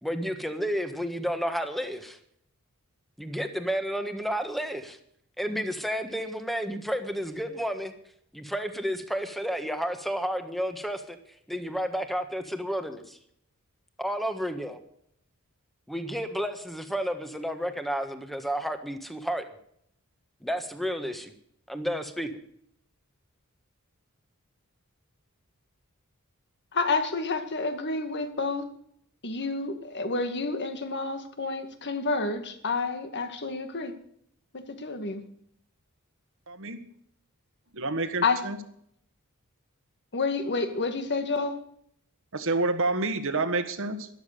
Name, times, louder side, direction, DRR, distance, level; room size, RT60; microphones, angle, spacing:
voice 1, 0.0-2.2 3.2-5.0 5.4-7.9 8.3-11.2 11.5-13.2 14.0-14.8 15.9-19.4 20.4-21.3 21.7-22.3, equal, ahead, 8 dB, 1.5 m, -31 dB
voice 2, 26.7-28.7 29.2-33.9 34.5-35.3 38.2-38.4 40.1-41.6, left 3 dB, 55° left, 8 dB, 1.9 m, -29 dB
voice 3, 36.5-36.8 37.7-38.6 42.3-44.1, right 3 dB, 65° right, 9 dB, 1.6 m, -28 dB
13.0 x 12.0 x 6.8 m, 0.68 s
head